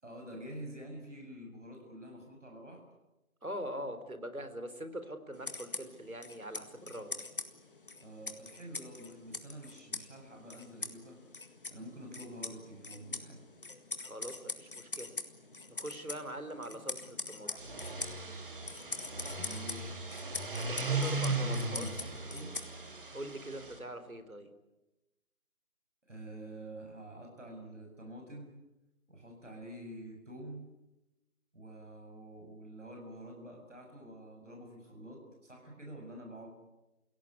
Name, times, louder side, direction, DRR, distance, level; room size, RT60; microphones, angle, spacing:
voice 1, 0.0-2.8 8.0-11.2 11.7-13.4 19.3-20.0 21.1-22.5 26.1-28.6 29.1-30.6 31.5-36.6, right 1 dB, 60° right, 1 dB, 7.2 m, -47 dB
voice 2, 3.4-7.2 14.0-15.1 15.7-17.5 20.5-21.9 23.1-24.5, right 1 dB, 85° right, 9 dB, 3.8 m, -43 dB
sound 1, 5.3-23.1, left 3 dB, 40° left, 1.9 m, -44 dB
sound 2, 17.5-23.8, right 3 dB, 40° right, 2.9 m, -37 dB
29.0 x 17.0 x 9.7 m, 1.0 s
figure-of-eight pair, 160°, 41 cm